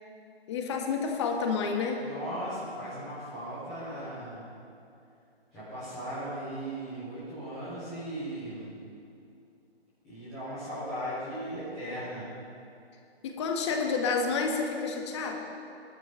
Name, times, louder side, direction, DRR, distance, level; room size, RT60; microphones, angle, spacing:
voice 1, 0.5-2.1 13.2-15.4, left 5 dB, 25° left, 3 dB, 1.7 m, -29 dB
voice 2, 2.0-4.5 5.5-8.7 10.0-12.3, right 1 dB, ahead, -18 dB, 0.4 m, -37 dB
18.5 x 12.5 x 5.6 m, 2.6 s
hypercardioid pair, 155°, 32 cm